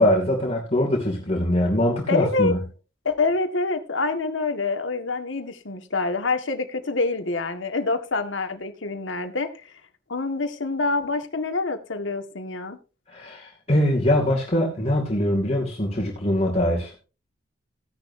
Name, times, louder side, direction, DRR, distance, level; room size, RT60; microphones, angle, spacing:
voice 1, 0.0-2.6 13.1-17.0, left 1 dB, 35° left, 2.6 m, -22 dB
voice 2, 2.1-2.5 3.1-9.7 10.1-12.8, left 3 dB, 90° left, 1.8 m, -26 dB
16.0 x 10.5 x 2.8 m
head